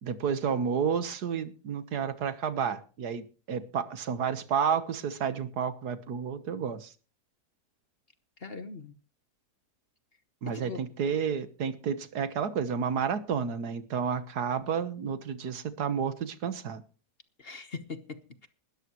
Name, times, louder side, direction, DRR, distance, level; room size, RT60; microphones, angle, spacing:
voice 1, 0.0-6.9 10.4-16.8, right 7 dB, 80° right, 1.7 m, -31 dB
voice 2, 8.4-8.9 10.5-10.8 17.4-18.5, left 4 dB, 40° left, 1.3 m, -41 dB
20.5 x 13.0 x 3.1 m
omnidirectional pair, 1.7 m